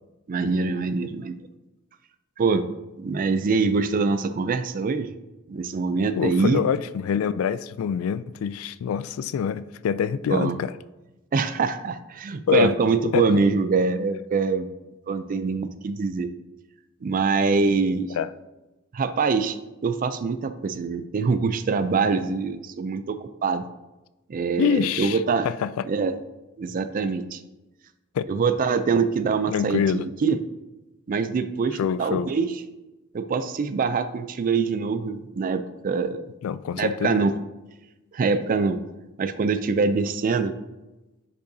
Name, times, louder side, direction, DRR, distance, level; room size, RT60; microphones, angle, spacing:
voice 1, 0.3-1.4 2.4-2.7 3.0-5.2 5.5-6.6 10.3-10.6 11.3-14.7 15.1-16.3 17.0-18.1 18.9-19.6 19.8-23.6 24.3-25.5 25.9-26.2 26.6-27.4 28.3-30.4 31.1-32.5 33.1-36.2 36.7-37.3 38.1-38.8 39.2-40.5, right 4 dB, 40° right, 0.4 m, -24 dB
voice 2, 6.2-10.7 12.5-12.8 13.1-13.2 18.1-18.3 24.6-25.9 28.1-28.2 29.5-30.1 31.8-32.3 36.4-37.2, left 7 dB, 75° left, 0.3 m, -25 dB
10.0 x 5.4 x 2.7 m
head